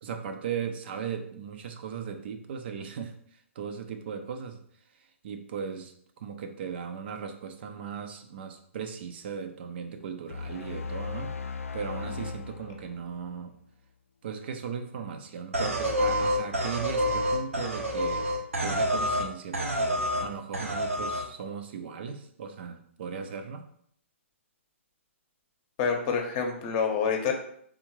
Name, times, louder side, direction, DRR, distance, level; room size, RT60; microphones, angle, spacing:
voice 1, 0.0-4.6 5.2-11.3 11.7-13.5 14.2-18.3 18.6-23.6, right 6 dB, 50° right, 7 dB, 0.5 m, -37 dB
sound 1, 10.3-13.6, left 4 dB, 80° left, 0.3 m, -37 dB
sound 2, 15.5-19.3 19.5-20.3 20.5-21.3, equal, 80° right, 0.9 m, -28 dB
voice 2, 25.8-27.3, left 6 dB, 35° left, 3 dB, 0.8 m, -27 dB
3.7 x 3.5 x 3.0 m, 0.65 s
figure-of-eight pair, 125°, 7 cm